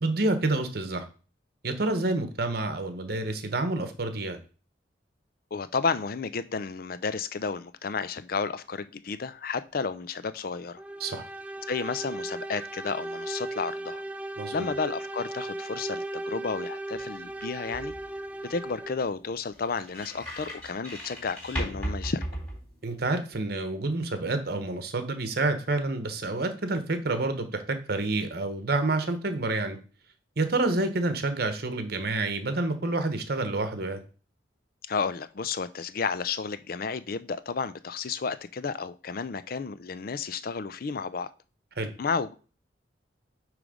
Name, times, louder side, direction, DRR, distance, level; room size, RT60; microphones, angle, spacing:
voice 1, 0.0-1.1 1.6-4.4 11.0-11.2 14.4-14.7 22.8-29.8 30.4-34.0 41.8-41.9, right 2 dB, 55° right, 8 dB, 1.0 m, -28 dB
voice 2, 5.5-10.8 11.7-14.0 14.5-17.9 18.4-22.2 34.9-41.3 42.0-42.3, left 5 dB, 50° left, 14 dB, 0.5 m, -32 dB
sound 1, 10.8-19.2, right 1 dB, 10° right, 0.4 m, -37 dB
sound 2, 16.9-23.2, equal, 10° left, 3.9 m, -38 dB
9.0 x 3.3 x 5.0 m, 0.37 s
head